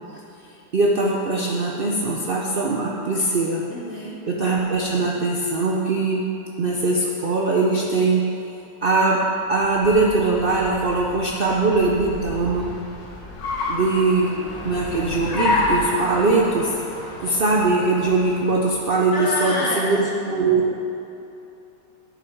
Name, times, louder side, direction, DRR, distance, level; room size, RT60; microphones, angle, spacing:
voice 1, 0.7-3.6 4.3-6.2 6.6-8.2 8.8-9.2 9.5-12.7 13.7-14.4 14.6-16.8 17.2-20.6, right 3 dB, 90° right, -2 dB, 0.4 m, -21 dB
voice 2, 3.7-4.2 19.1-19.9, left 2 dB, 50° left, -4 dB, 1.8 m, -27 dB
Car, 9.5-19.0, left 2 dB, 80° left, 1.7 m, -30 dB
10.5 x 5.9 x 4.6 m, 2.8 s
omnidirectional pair, 1.9 m